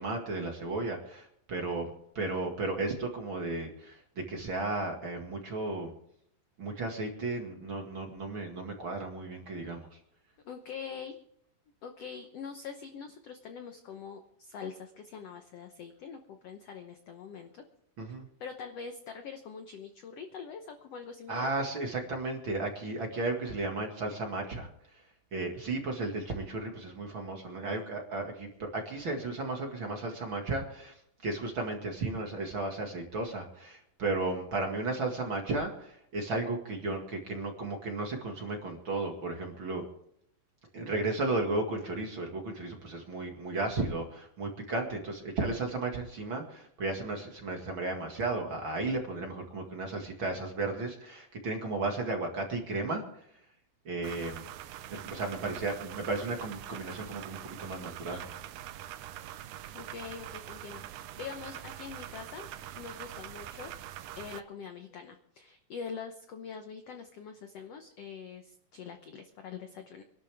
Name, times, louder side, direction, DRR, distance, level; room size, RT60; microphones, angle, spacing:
voice 1, 0.0-4.0 4.3-5.9 6.6-10.0 18.0-18.3 21.3-25.0 25.3-30.9 31.2-39.9 40.7-53.2 53.8-54.4 54.9-58.2, right 2 dB, 40° right, 2 dB, 2.3 m, -34 dB
voice 2, 10.4-11.2 11.8-17.6 18.4-21.5 59.7-62.5 62.8-63.7 64.1-70.0, left 6 dB, 70° left, 6 dB, 1.5 m, -44 dB
sound 1, 54.0-64.4, right 12 dB, 75° right, 1.9 m, -44 dB
25.0 x 12.0 x 3.5 m, 0.69 s
omnidirectional pair, 4.1 m